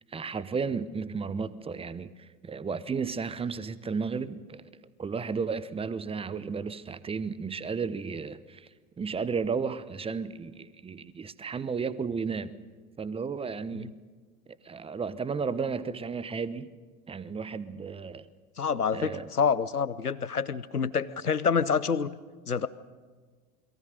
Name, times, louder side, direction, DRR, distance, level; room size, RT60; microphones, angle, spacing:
voice 1, 0.1-4.7 5.0-8.7 9.0-12.5 13.0-14.0 14.6-16.7 17.1-18.3 18.9-19.3, right 5 dB, 15° right, 17 dB, 0.9 m, -33 dB
voice 2, 18.6-22.1 22.5-22.7, left 6 dB, 90° left, 17 dB, 0.9 m, -27 dB
28.5 x 22.5 x 6.7 m, 1.5 s
figure-of-eight pair, 80°, 44 cm